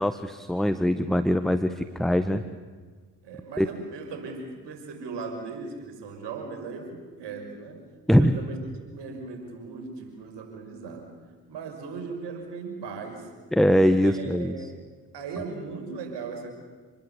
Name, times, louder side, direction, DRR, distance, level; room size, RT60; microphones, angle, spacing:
voice 1, 0.0-2.4 3.6-3.7 8.1-8.4 13.5-14.5, equal, ahead, 10 dB, 1.5 m, -22 dB
voice 2, 3.2-7.8 8.2-8.6 8.8-11.1 11.5-13.3 14.0-14.8 15.1-16.5, right 4 dB, 70° right, 4 dB, 5.8 m, -38 dB
27.5 x 20.5 x 8.4 m, 1.5 s
hypercardioid pair, 45°, 44 cm